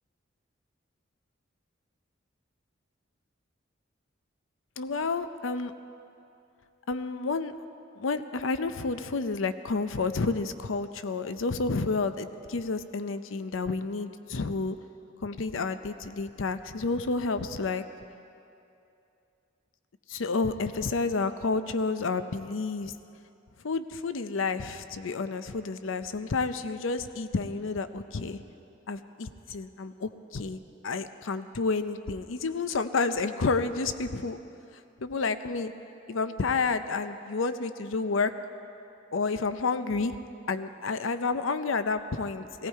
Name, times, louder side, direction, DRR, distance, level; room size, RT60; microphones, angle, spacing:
voice 1, 4.8-5.7 6.9-7.5 8.0-14.8 15.2-17.8 20.1-22.9 23.6-28.4 28.9-34.4 35.0-35.7 36.1-38.3 39.1-40.1 40.5-42.7, left 4 dB, 80° left, 11 dB, 0.6 m, -30 dB
18.0 x 17.0 x 4.6 m, 2.7 s
head